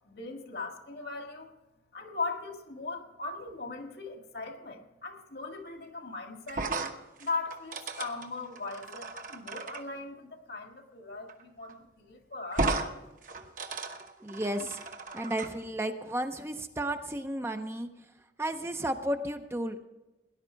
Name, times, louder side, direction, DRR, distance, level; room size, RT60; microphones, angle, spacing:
voice 1, 0.1-1.5 1.9-6.7 7.2-13.0, left 3 dB, 70° left, 4 dB, 2.0 m, -39 dB
sound 1, 6.5-9.8 11.3-11.4 11.7-11.8 12.5-12.9 13.2-15.5, right 3 dB, 45° right, 1.1 m, -35 dB
voice 2, 14.2-14.9 15.1-17.9 18.4-19.9, right 1 dB, 15° right, 7 dB, 0.6 m, -33 dB
18.0 x 11.0 x 4.6 m, 1.0 s
head